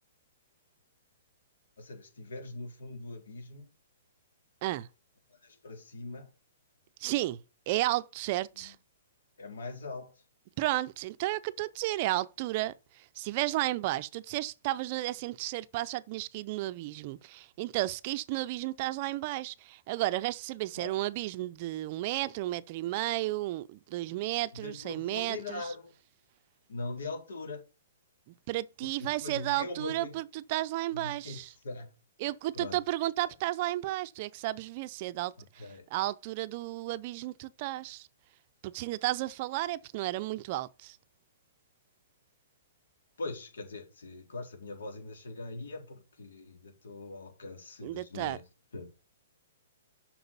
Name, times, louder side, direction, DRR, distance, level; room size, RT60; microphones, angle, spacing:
voice 1, 1.8-3.7 5.4-6.3 8.6-8.7 9.4-10.1 20.7-20.9 24.6-25.9 26.7-27.6 29.2-30.2 30.9-31.4 31.6-31.9 32.5-32.8 35.4-35.8 43.2-48.4 48.7-48.9, left 3 dB, 90° left, 4.1 m, -41 dB
voice 2, 7.0-7.4 7.7-8.8 10.6-25.7 28.5-31.5 32.2-38.1 38.6-41.0 47.8-48.4, right 17 dB, 35° right, 0.4 m, -33 dB
8.0 x 6.0 x 6.9 m
hypercardioid pair, 165°, 0 cm